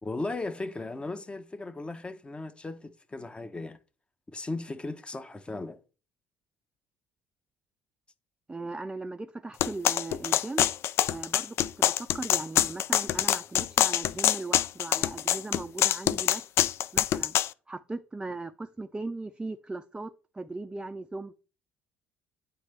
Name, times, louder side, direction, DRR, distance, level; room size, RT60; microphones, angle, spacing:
voice 1, 0.0-3.8 4.3-5.8, left 2 dB, 20° left, 0.7 m, -36 dB
voice 2, 8.5-10.7 11.1-16.4 16.9-17.3 17.7-21.3, right 2 dB, 15° right, 0.5 m, -38 dB
sound 1, 9.6-17.5, left 12 dB, 60° left, 0.3 m, -25 dB
9.0 x 3.3 x 3.3 m
hypercardioid pair, 60°, 5 cm